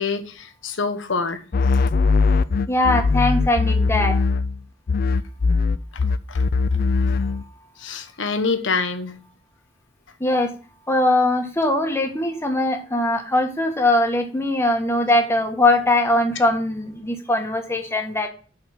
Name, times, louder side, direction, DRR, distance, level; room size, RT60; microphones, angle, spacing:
voice 1, 0.0-1.4 6.3-6.4 7.8-9.2, left 4 dB, 75° left, 9 dB, 1.1 m, -25 dB
sound 1, 1.5-4.6 4.9-7.4, left 4 dB, 50° left, 0.4 m, -20 dB
voice 2, 2.7-4.2 10.2-10.5 10.9-18.3, left 1 dB, 15° left, 4 dB, 1.5 m, -21 dB
5.9 x 5.8 x 7.0 m, 0.37 s
head